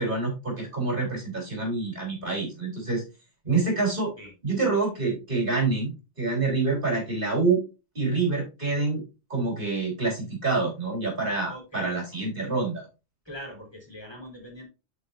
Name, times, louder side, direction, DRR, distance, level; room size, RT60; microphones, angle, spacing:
voice 1, 0.0-3.0 3.4-4.1 4.4-5.9 6.2-7.6 7.9-9.0 9.3-12.8, right 3 dB, 55° right, -2 dB, 4.1 m, -26 dB
voice 2, 11.5-12.0 13.3-14.6, equal, 25° left, -1 dB, 3.7 m, -41 dB
12.0 x 5.2 x 2.7 m, 0.29 s
omnidirectional pair, 1.1 m